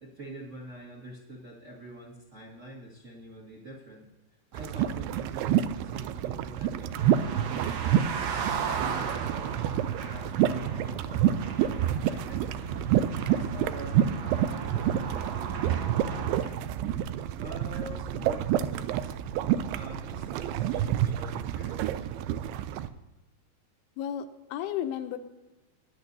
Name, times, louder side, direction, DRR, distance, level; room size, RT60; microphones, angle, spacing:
voice 1, 0.0-4.1 4.5-8.4 8.8-12.8 13.2-16.8 17.4-19.1 19.7-22.3, right 1 dB, 45° right, -3 dB, 0.9 m, -45 dB
sound 1, 4.5-22.9, right 11 dB, 85° right, 2.5 m, -28 dB
sound 2, 6.9-16.4, right 5 dB, 70° right, 2.6 m, -36 dB
voice 2, 24.0-25.2, left 10 dB, 80° left, 8 dB, 2.6 m, -33 dB
19.0 x 10.5 x 2.7 m, 1.1 s
omnidirectional pair, 4.7 m